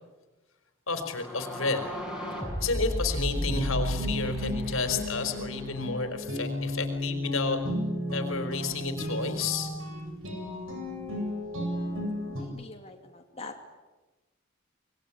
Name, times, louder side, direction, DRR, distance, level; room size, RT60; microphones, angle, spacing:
voice 1, 0.9-1.8 2.6-7.6 8.1-9.7, left 4 dB, 90° left, 7 dB, 4.2 m, -31 dB
sound 1, 1.1-5.9, equal, 5° right, 6.7 m, -34 dB
sound 2, 3.3-12.4, equal, 75° right, 7.8 m, -33 dB
voice 2, 11.7-13.5, left 2 dB, 30° left, 2 dB, 2.7 m, -45 dB
26.0 x 21.0 x 9.9 m, 1.1 s
head